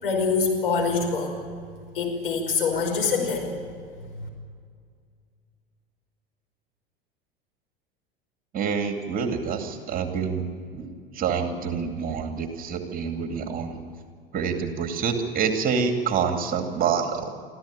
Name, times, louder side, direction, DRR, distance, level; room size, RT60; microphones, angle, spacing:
voice 1, 0.0-1.4 1.9-3.6 4.2-4.3, left 4 dB, 70° left, 1 dB, 5.4 m, -25 dB
voice 2, 8.5-10.5 10.7-13.8 14.3-17.3, right 6 dB, 30° right, 5 dB, 2.5 m, -27 dB
25.0 x 14.5 x 9.0 m, 2.1 s
figure-of-eight pair, 80°, 29 cm